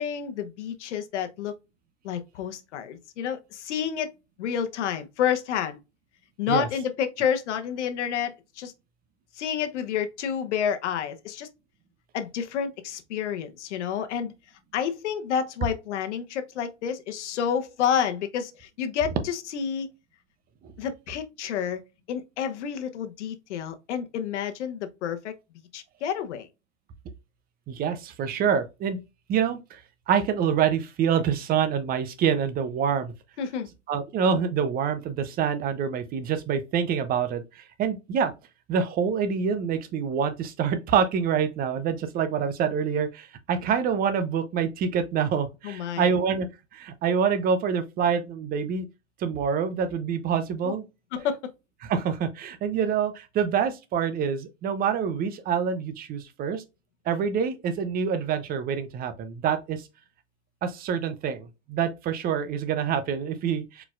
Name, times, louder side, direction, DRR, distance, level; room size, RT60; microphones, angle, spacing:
voice 1, 0.0-1.5 2.0-4.1 4.4-5.8 6.4-8.7 9.4-11.5 12.1-14.3 14.7-19.9 20.8-21.8 22.1-25.3 25.7-26.5 33.4-33.7 45.6-46.1 50.6-50.7 51.1-51.5, left 8 dB, 75° left, 1.0 m, -29 dB
voice 2, 27.7-29.0 29.3-29.8 30.1-33.1 33.9-38.3 38.7-46.5 46.7-48.9 49.2-50.8 51.8-56.6 57.1-59.8 60.6-63.8, right 7 dB, 25° right, 0.7 m, -26 dB
4.6 x 4.0 x 2.5 m
hypercardioid pair, 130°, 35 cm